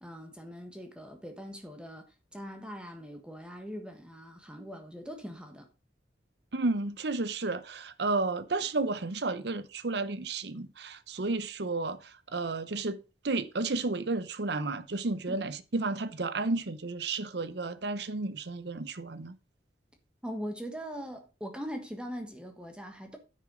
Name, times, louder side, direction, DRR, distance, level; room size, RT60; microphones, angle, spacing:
voice 1, 0.0-5.7 15.3-15.4 20.2-23.2, equal, 5° right, 1.4 m, -41 dB
voice 2, 6.5-12.0 12.3-19.3, right 3 dB, 65° right, 0.8 m, -32 dB
9.5 x 6.5 x 4.9 m
head